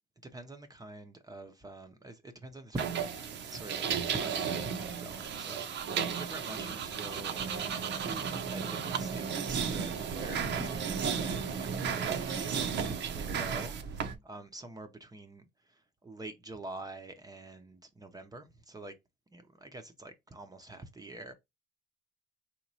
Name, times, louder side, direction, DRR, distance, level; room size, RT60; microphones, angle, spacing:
voice 1, 0.3-3.1 3.5-7.4 7.9-8.2 8.5-18.9 19.3-21.3, right 2 dB, 20° right, 0.6 m, -46 dB
sound 1, 2.8-14.1, right 7 dB, 65° right, 0.7 m, -34 dB
4.1 x 3.0 x 2.7 m
cardioid pair, 90°, 20 cm